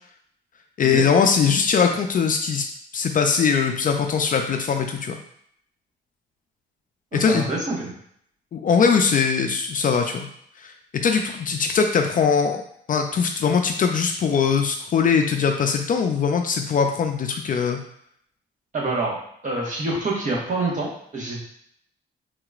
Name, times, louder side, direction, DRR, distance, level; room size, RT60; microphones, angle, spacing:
voice 1, 0.8-2.6 2.9-5.2 7.1-7.5 8.5-10.3 10.6-10.7 11.0-12.6 12.9-17.8, left 6 dB, 45° left, 4 dB, 0.4 m, -21 dB
voice 2, 7.1-7.9 18.7-19.2 19.4-21.4, right 2 dB, 40° right, -5 dB, 1.4 m, -26 dB
3.8 x 2.9 x 2.4 m, 0.67 s
cardioid pair, 90°, 20 cm